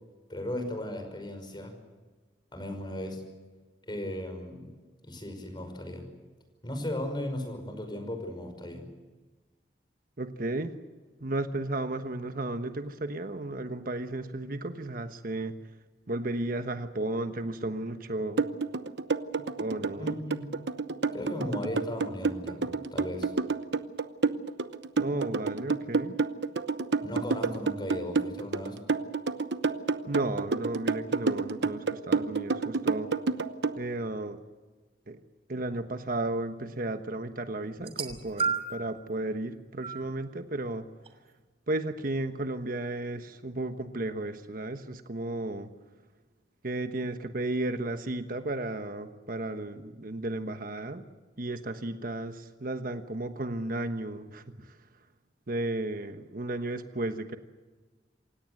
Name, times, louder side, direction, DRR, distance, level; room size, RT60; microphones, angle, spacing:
voice 1, 0.3-1.7 2.5-3.3 3.9-4.7 5.0-6.0 6.6-8.9 20.0-20.6 21.1-23.3 27.0-28.8, left 1 dB, 25° left, 6 dB, 5.5 m, -36 dB
voice 2, 10.2-10.7 11.2-15.5 16.1-18.4 19.4-20.2 25.0-26.2 30.1-33.1 33.8-34.4 35.1-35.2 35.5-40.8 41.7-45.7 46.6-51.0 51.4-54.8 55.5-57.4, right 2 dB, 55° right, 8 dB, 1.2 m, -34 dB
sound 1, 18.4-33.8, right 4 dB, 80° right, 0.9 m, -28 dB
sound 2, 37.8-38.9 39.8-40.0 41.1-41.2, right 5 dB, 35° right, 3.0 m, -31 dB
27.5 x 17.0 x 7.8 m, 1.3 s
head